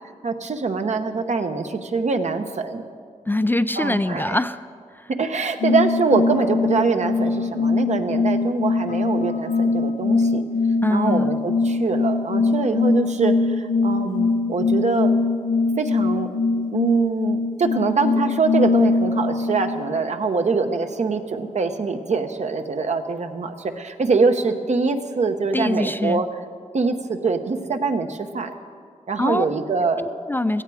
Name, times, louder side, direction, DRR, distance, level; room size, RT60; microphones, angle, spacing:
voice 1, 0.2-2.8 3.8-4.4 5.1-10.4 10.9-15.1 15.8-16.3 16.7-26.3 26.7-28.5 29.1-30.1, right 4 dB, 60° right, 7 dB, 1.0 m, -24 dB
voice 2, 3.3-4.7 4.9-5.1 10.8-11.4 25.5-26.2 29.2-29.5 30.0-30.6, left 1 dB, 15° left, 12 dB, 0.3 m, -23 dB
sound 1, 5.6-20.0, left 3 dB, 80° left, 0.5 m, -22 dB
17.0 x 14.5 x 4.9 m, 2.2 s
wide cardioid pair, 85°, 13 cm